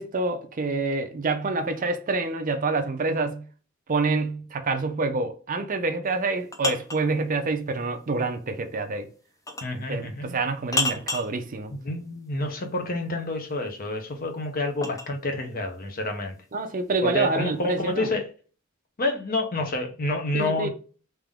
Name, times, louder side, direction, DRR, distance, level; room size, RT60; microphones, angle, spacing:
voice 1, 0.0-3.4 3.9-9.1 9.9-11.7 16.5-18.1 20.3-20.7, right 3 dB, 40° right, 0.5 m, -27 dB
sound 1, 6.1-7.1 9.5-9.8 10.7-11.4 13.6-15.1, left 2 dB, 15° left, 0.5 m, -30 dB
voice 2, 9.6-10.4 11.7-16.4 17.0-18.3 19.0-20.7, left 2 dB, 45° left, 0.9 m, -28 dB
3.7 x 2.8 x 3.5 m
head